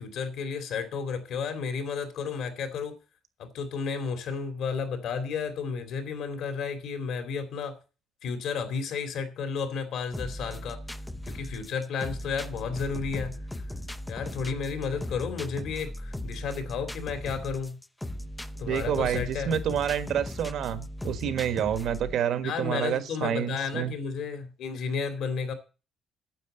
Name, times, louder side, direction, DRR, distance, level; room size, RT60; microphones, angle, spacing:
voice 1, 0.0-3.0 3.4-7.7 8.2-10.8 11.3-13.4 14.1-17.8 18.6-19.5 22.4-25.5, left 5 dB, 70° left, 8 dB, 2.6 m, -32 dB
sound 1, 10.1-22.1, left 1 dB, 5° left, 0.5 m, -38 dB
voice 2, 18.7-23.9, right 9 dB, 65° right, 10 dB, 1.5 m, -28 dB
9.5 x 7.8 x 7.9 m, 0.34 s
cardioid pair, 160°, 0 cm